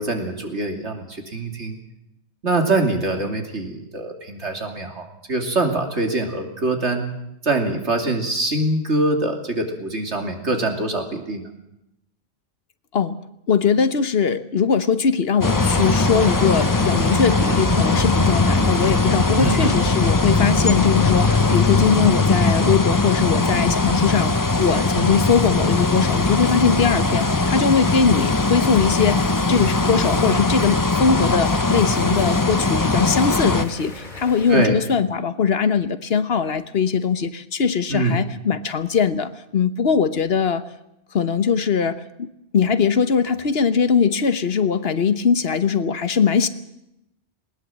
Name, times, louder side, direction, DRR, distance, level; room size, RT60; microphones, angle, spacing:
voice 1, 0.0-1.8 2.4-7.1 7.4-11.5 19.4-19.7 34.5-34.8 37.9-38.2, right 2 dB, 75° right, 4 dB, 3.2 m, -24 dB
voice 2, 13.5-40.6 41.1-46.5, left 6 dB, 60° left, 12 dB, 1.2 m, -21 dB
sound 1, 15.4-34.7, left 1 dB, 45° left, 3.1 m, -34 dB
sound 2, 15.4-33.6, left 3 dB, 20° left, 0.8 m, -20 dB
19.5 x 19.5 x 7.5 m, 0.85 s
omnidirectional pair, 1.2 m